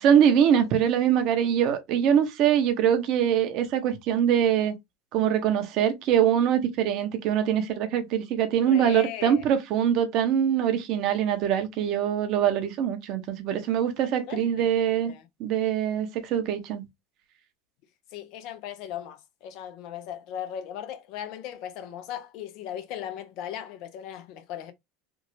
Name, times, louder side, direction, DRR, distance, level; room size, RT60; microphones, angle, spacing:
voice 1, 0.0-4.7 5.1-15.1 15.4-16.8, right 9 dB, 55° right, 1.0 m, -23 dB
voice 2, 8.7-9.4 14.3-14.7 15.0-15.3 18.1-24.7, left 10 dB, 60° left, 0.7 m, -37 dB
3.5 x 2.4 x 3.2 m
hypercardioid pair, 100°, 0 cm